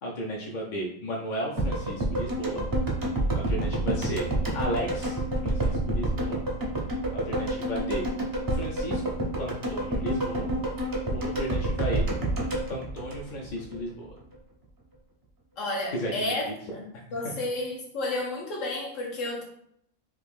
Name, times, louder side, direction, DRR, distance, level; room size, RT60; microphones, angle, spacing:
voice 1, 0.0-2.6 3.3-4.3 4.5-6.4 7.1-8.0 8.5-9.0 9.4-10.5 11.1-12.0 12.7-14.1 15.9-16.5 17.2-17.4, equal, 55° left, -1 dB, 0.5 m, -34 dB
sound 1, 1.6-13.8 14.0-14.1, right 1 dB, 30° right, 0.4 m, -28 dB
voice 2, 15.6-16.8 17.1-19.4, left 2 dB, 75° left, -2 dB, 1.3 m, -31 dB
3.1 x 2.4 x 3.4 m, 0.68 s
omnidirectional pair, 1.3 m